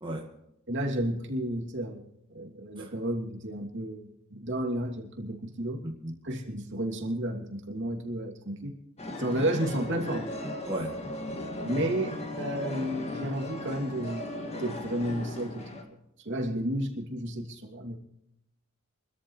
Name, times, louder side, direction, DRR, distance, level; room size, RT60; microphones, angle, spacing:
voice 1, 0.7-2.0 2.3-5.8 6.2-8.7 9.2-10.3 11.6-14.3 14.6-15.8 16.2-18.0, right 1 dB, 60° right, 1 dB, 2.9 m, -32 dB
sound 1, 9.0-15.8, left 1 dB, 30° left, 2.2 m, -37 dB
voice 2, 10.7-11.0, right 1 dB, 25° right, 0 dB, 1.7 m, -35 dB
25.0 x 13.5 x 3.3 m, 0.82 s
head